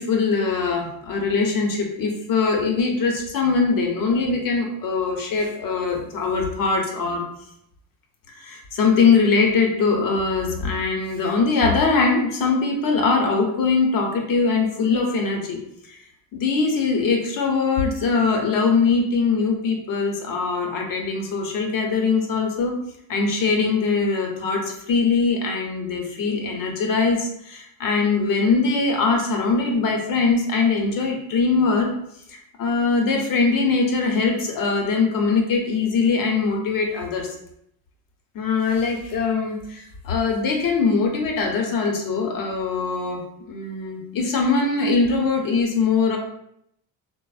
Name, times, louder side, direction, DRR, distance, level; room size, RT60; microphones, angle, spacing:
voice 1, 0.0-7.2 8.3-15.6 15.9-16.0 16.3-22.8 23.1-31.9 32.3-37.3 38.3-46.2, left 4 dB, 45° left, 2 dB, 0.7 m, -22 dB
3.1 x 2.0 x 2.4 m, 0.74 s
supercardioid pair, 105°, 47 cm